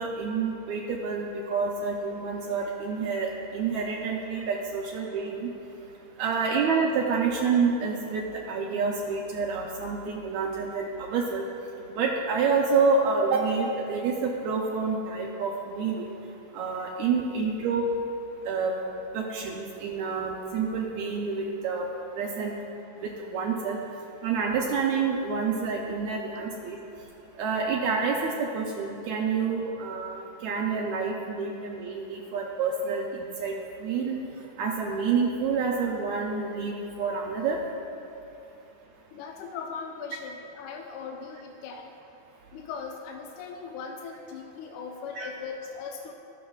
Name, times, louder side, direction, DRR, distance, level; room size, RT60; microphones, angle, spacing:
voice 1, 0.0-5.5 6.2-11.4 11.9-16.1 16.5-17.8 18.5-18.7 19.1-21.9 22.2-22.5 23.0-23.8 24.2-26.8 27.4-33.6 33.8-34.2 34.6-37.6 45.2-45.3, right 5 dB, 85° right, -1 dB, 1.6 m, -28 dB
voice 2, 39.1-41.9 42.5-46.1, left 5 dB, 80° left, 2 dB, 1.8 m, -39 dB
16.5 x 6.2 x 2.3 m, 2.9 s
omnidirectional pair, 3.9 m